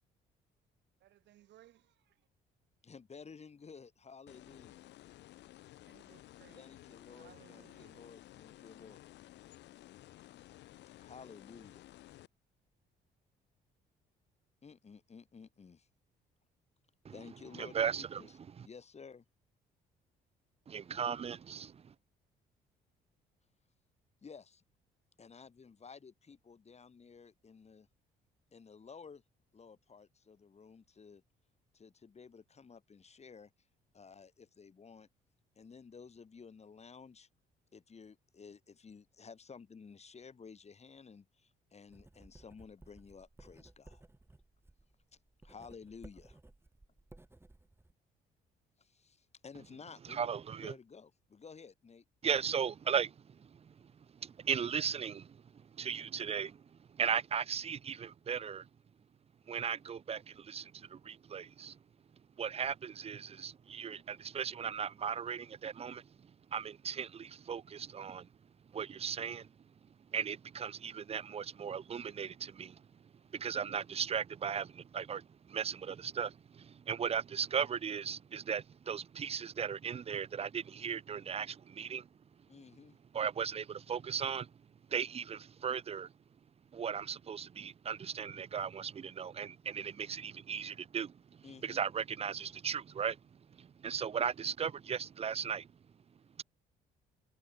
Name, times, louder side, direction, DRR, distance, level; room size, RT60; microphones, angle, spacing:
voice 1, 1.0-2.1 5.9-6.6 7.1-8.0, right 14 dB, 75° right, 5.7 m, -62 dB
voice 2, 2.8-4.8 6.5-9.0 11.0-11.9 14.6-15.9 17.1-19.2 24.2-24.6 25.2-27.9 28.5-29.2 29.5-31.2 31.7-33.5 33.9-35.1 35.6-37.3 37.7-44.0 45.4-46.4 48.8-50.3 50.6-52.0 82.5-83.0 91.4-91.8, left 5 dB, 35° left, 5.9 m, -54 dB
sound 1, 4.3-12.3, left 15 dB, 75° left, 1.1 m, -55 dB
voice 3, 17.6-18.2 18.6-18.7 20.7-21.8 50.1-50.7 52.2-53.1 53.4-53.7 54.2-55.4 55.8-56.6 57.0-58.7 59.5-61.8 62.4-66.0 66.5-68.3 68.7-69.5 70.1-72.8 73.3-82.1 83.1-84.5 84.9-86.1 86.7-91.1 91.6-93.2 93.6-95.7, right 7 dB, 35° right, 0.6 m, -37 dB
Writing, 41.9-47.9, right 2 dB, 15° right, 3.6 m, -58 dB
supercardioid pair, 80°, 18 cm